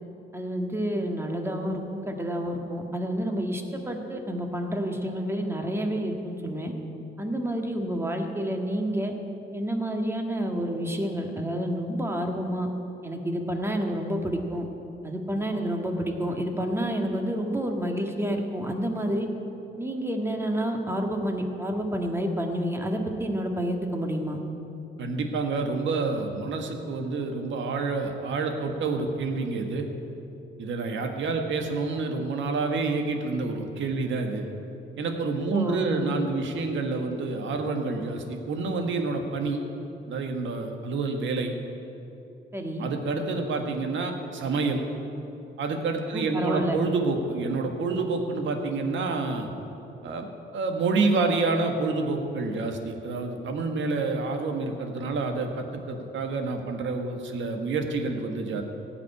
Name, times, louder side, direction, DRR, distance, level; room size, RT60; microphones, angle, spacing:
voice 1, 0.3-6.7 7.2-9.1 9.5-12.7 13.0-14.7 15.0-19.3 19.8-24.4 35.5-36.1 42.5-42.9 46.1-46.8, equal, 10° right, 3 dB, 1.8 m, -29 dB
voice 2, 25.0-29.9 30.6-34.4 35.0-39.6 40.1-41.5 42.8-44.8 45.6-49.5 50.0-50.3 50.5-58.6, right 3 dB, 75° right, 4 dB, 1.6 m, -28 dB
16.0 x 6.1 x 9.6 m, 2.9 s
cardioid pair, 90°, 20 cm